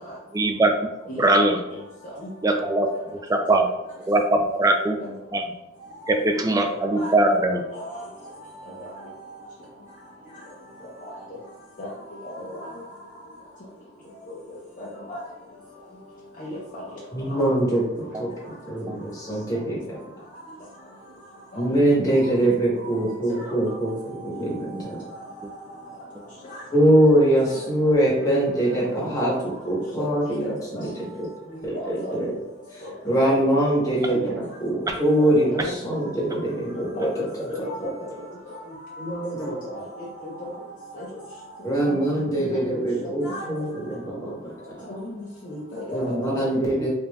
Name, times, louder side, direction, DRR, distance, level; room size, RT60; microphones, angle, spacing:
voice 1, 0.3-0.7 1.2-1.6 2.4-3.7 4.0-5.0 5.3-5.5 6.1-7.6 18.1-18.2 18.9-19.0 25.4-25.5 34.9-35.0, right 2 dB, 15° right, 4 dB, 0.4 m, -21 dB
voice 2, 7.0-7.4 7.7-8.0 8.8-8.9 11.0-11.1 11.8-11.9 12.2-12.3 15.1-15.2 16.4-16.6 23.4-23.5 26.5-26.6 30.0-30.1 30.4-30.5 31.7-32.2 34.1-34.3 35.2-35.3 35.6-35.7 37.0-37.1 37.5-37.9 39.7-40.1 40.4-40.5 41.9-42.0 42.7-43.4 44.9-45.0 45.5-46.3, left 1 dB, 40° left, -6 dB, 0.7 m, -34 dB
voice 3, 17.1-19.8 21.6-25.0 26.7-31.1 31.6-32.4 33.0-37.5 39.0-39.6 41.6-44.5 45.9-46.9, right 1 dB, 15° left, -6 dB, 1.2 m, -23 dB
5.2 x 2.7 x 2.3 m, 0.94 s
head